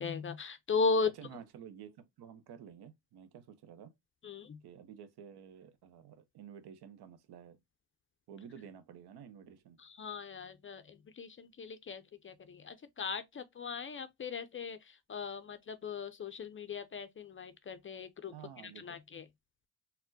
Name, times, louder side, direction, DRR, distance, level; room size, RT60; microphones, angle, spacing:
voice 1, 0.0-1.1 4.2-4.6 9.8-18.3 18.6-19.2, left 4 dB, 30° left, 0.4 m, -37 dB
voice 2, 1.2-4.0 4.6-7.6 8.3-9.8 18.3-19.0, right 8 dB, 65° right, 0.7 m, -51 dB
4.2 x 2.1 x 2.6 m
cardioid pair, 75°, 42 cm